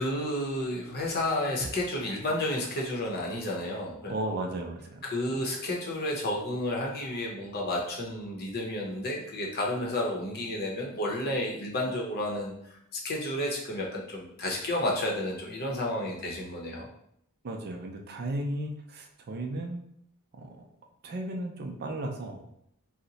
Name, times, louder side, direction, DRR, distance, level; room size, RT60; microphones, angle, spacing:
voice 1, 0.0-4.1 5.0-16.9, left 1 dB, 45° left, -2 dB, 0.7 m, -31 dB
voice 2, 4.1-5.0 17.4-19.8 20.3-20.7 21.0-22.4, right 1 dB, 45° right, 2 dB, 0.4 m, -35 dB
2.8 x 2.1 x 3.9 m, 0.73 s
head